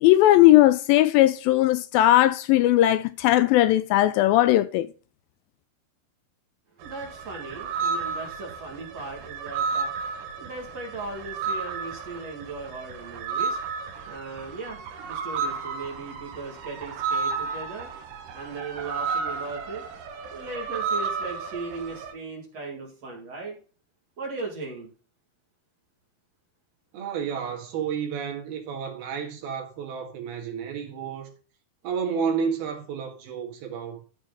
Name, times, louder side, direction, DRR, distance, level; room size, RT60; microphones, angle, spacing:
voice 1, 0.0-4.9, left 15 dB, 85° left, 2.1 m, -18 dB
voice 2, 6.8-10.0 10.4-13.6 14.0-17.9 18.3-19.8 20.3-23.6 24.2-24.9, right 3 dB, 45° right, 2.9 m, -37 dB
sound 1, 6.8-22.1, right 5 dB, 90° right, 3.1 m, -32 dB
voice 3, 26.9-31.3 31.8-34.0, right 6 dB, 75° right, 3.7 m, -31 dB
13.0 x 5.0 x 3.9 m
omnidirectional pair, 4.5 m